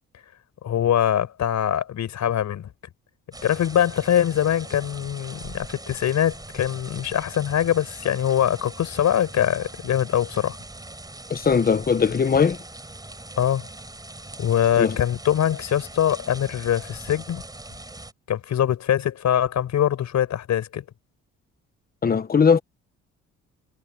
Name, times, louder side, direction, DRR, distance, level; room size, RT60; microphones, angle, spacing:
voice 1, 0.6-2.7 3.4-10.6 12.3-12.4 13.4-13.7 14.4-17.4 18.3-20.8, left 10 dB, 65° left, 5.5 m, -23 dB
sound 1, 3.3-18.1, right 2 dB, 15° right, 5.2 m, -41 dB
voice 2, 11.3-12.6 14.8-15.0 22.0-22.6, left 6 dB, 30° left, 1.1 m, -19 dB
cardioid pair, 90°, 30 cm